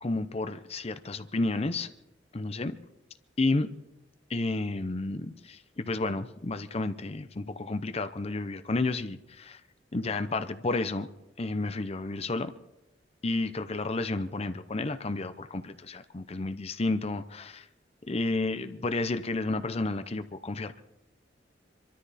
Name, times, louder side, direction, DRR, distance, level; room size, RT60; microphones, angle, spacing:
voice 1, 0.0-1.9 2.3-2.7 3.4-3.7 4.3-9.6 9.9-11.1 11.4-12.5 13.2-17.7 18.1-20.8, left 2 dB, 35° left, 11 dB, 0.7 m, -31 dB
25.5 x 13.0 x 4.2 m, 0.92 s
head